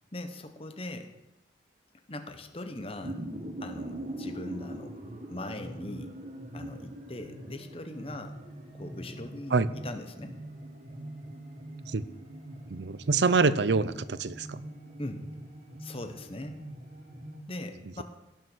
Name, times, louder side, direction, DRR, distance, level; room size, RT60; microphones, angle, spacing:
voice 1, 0.1-1.1 2.1-3.2 3.6-4.9 5.3-6.1 6.5-8.4 8.7-9.6 9.8-10.4 15.0-15.2 15.8-16.6 17.5-18.0, left 1 dB, 35° left, 7 dB, 1.2 m, -40 dB
sound 1, 2.7-17.4, right 1 dB, 40° right, 1.7 m, -42 dB
voice 2, 12.7-14.6, right 4 dB, 80° right, 16 dB, 0.6 m, -25 dB
17.0 x 6.9 x 6.3 m, 0.97 s
head